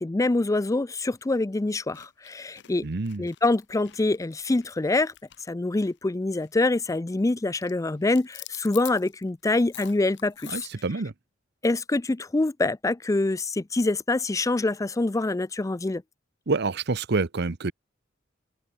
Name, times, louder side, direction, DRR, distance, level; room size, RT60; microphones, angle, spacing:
voice 1, 0.0-2.9 3.2-5.1 5.5-10.7 11.6-16.0, left 2 dB, 15° left, 0.4 m, -25 dB
sound 1, 1.2-1.3 1.7-6.1 6.4-6.7 6.9-7.3 7.6-10.9, left 15 dB, 65° left, 1.0 m, -46 dB
voice 2, 2.8-3.2 10.5-11.1 16.5-17.7, right 3 dB, 60° right, 0.9 m, -27 dB
open air
head